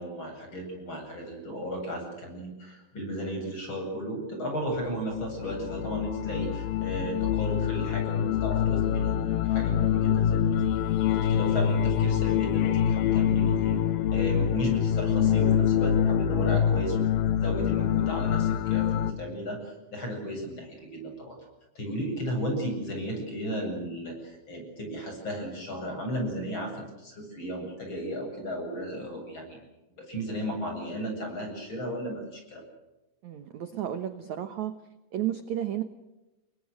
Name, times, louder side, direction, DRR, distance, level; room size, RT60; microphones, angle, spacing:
voice 1, 0.0-10.5 11.1-13.8 14.1-21.4 21.8-29.6 30.0-32.6, equal, 25° left, 2 dB, 8.6 m, -34 dB
sound 1, 5.0-19.1, left 9 dB, 70° left, 2.7 m, -25 dB
voice 2, 33.2-34.7 35.1-35.8, right 11 dB, 80° right, 10 dB, 1.6 m, -32 dB
29.5 x 23.0 x 6.5 m, 1.0 s
omnidirectional pair, 5.1 m